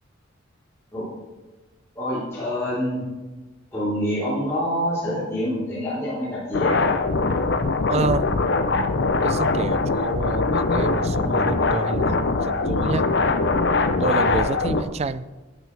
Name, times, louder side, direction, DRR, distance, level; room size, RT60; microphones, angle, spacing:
voice 1, 1.9-3.1 3.7-6.7 14.0-14.4, equal, 15° left, -12 dB, 3.9 m, -26 dB
sound 1, 6.5-14.8, left 3 dB, 60° left, 0.7 m, -22 dB
voice 2, 7.9-8.3 9.2-13.1 14.0-15.3, right 4 dB, 35° right, 15 dB, 0.3 m, -28 dB
13.5 x 9.0 x 3.4 m, 1.2 s
head